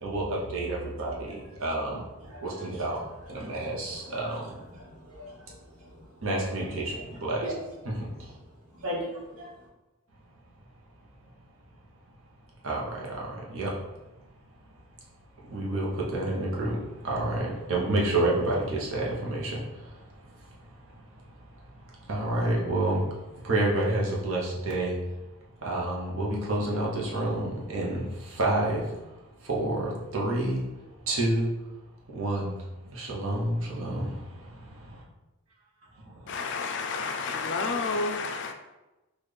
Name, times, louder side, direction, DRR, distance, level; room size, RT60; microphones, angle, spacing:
voice 1, 0.0-2.1 2.4-4.6 6.2-7.5 7.8-8.4 12.6-13.8 15.4-25.1 25.6-30.7 31.1-31.5 32.1-34.9 36.0-36.4, right 1 dB, 60° right, -3 dB, 0.9 m, -30 dB
voice 2, 2.2-2.7 3.0-3.6 4.0-4.2 4.7-6.1 6.9-7.0 7.4-7.6 8.2-8.3 8.7-9.5, equal, 85° right, -4 dB, 1.2 m, -39 dB
voice 3, 36.3-38.5, left 4 dB, 55° left, 5 dB, 0.4 m, -30 dB
4.1 x 2.4 x 3.3 m, 1.0 s
head